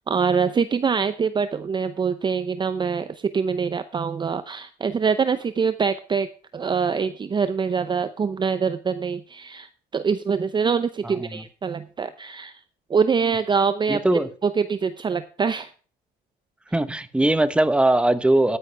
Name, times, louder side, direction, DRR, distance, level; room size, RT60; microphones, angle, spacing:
voice 1, 0.1-3.1 3.3-6.3 6.5-9.7 9.9-12.6 12.9-14.0 14.4-15.7, right 6 dB, 25° right, 0.6 m, -24 dB
voice 2, 11.0-11.4 13.9-14.3 16.7-18.6, right 1 dB, 5° right, 1.1 m, -20 dB
13.5 x 9.9 x 3.4 m
cardioid pair, 110°, 17 cm